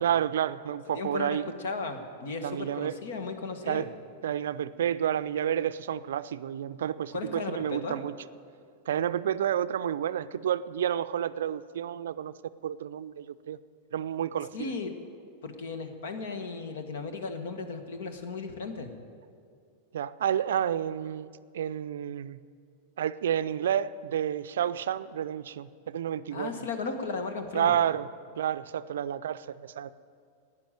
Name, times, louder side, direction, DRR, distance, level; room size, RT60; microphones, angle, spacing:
voice 1, 0.0-1.5 2.4-2.9 3.6-3.9 4.2-8.1 8.9-12.3 12.6-13.6 13.9-14.7 19.9-21.3 21.5-22.4 23.0-26.5 27.5-28.1 28.4-29.9, right 10 dB, 70° right, 14 dB, 0.4 m, -30 dB
voice 2, 0.9-3.9 7.1-8.0 14.5-14.9 15.4-18.9 26.3-27.7, left 4 dB, 65° left, 7 dB, 1.5 m, -35 dB
12.0 x 9.7 x 9.0 m, 2.2 s
hypercardioid pair, 95°, 0 cm